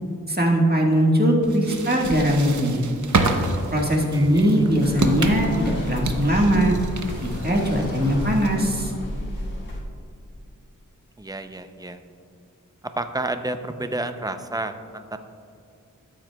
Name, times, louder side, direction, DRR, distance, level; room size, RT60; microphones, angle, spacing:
voice 1, 0.3-2.8 3.7-6.7 7.2-8.9, equal, 30° right, -1 dB, 1.6 m, -20 dB
sound 1, 1.4-8.7, right 3 dB, 60° right, 0.8 m, -29 dB
Car passing by / Traffic noise roadway noise, 3.9-9.1, left 1 dB, 45° left, 1.7 m, -39 dB
voice 2, 4.1-4.5 11.2-12.0 13.0-15.2, right 2 dB, 10° right, 8 dB, 0.5 m, -30 dB
sound 2, 4.8-9.8, equal, 75° left, 1.6 m, -32 dB
13.0 x 7.7 x 2.3 m, 2.5 s
wide cardioid pair, 45°, 33 cm